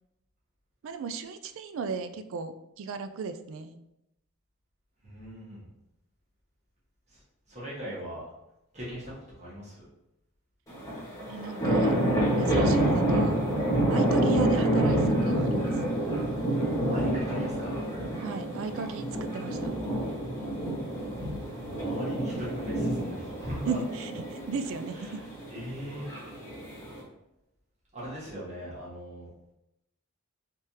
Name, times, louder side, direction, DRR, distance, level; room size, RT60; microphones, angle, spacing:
voice 1, 0.8-3.8 11.3-12.0 12.4-13.4 13.9-15.7 18.2-19.1 19.3-19.7 23.7-24.1 24.5-25.2, right 5 dB, 60° right, 10 dB, 0.3 m, -35 dB
voice 2, 5.0-5.6 7.1-7.2 7.5-8.2 8.7-9.9 16.9-17.8 21.5-23.8 24.9-26.1 27.9-29.3, equal, 30° right, -8 dB, 1.4 m, -40 dB
sound 1, 10.7-27.0, right 1 dB, 15° left, 1.2 m, -28 dB
3.4 x 3.3 x 2.8 m, 0.89 s
head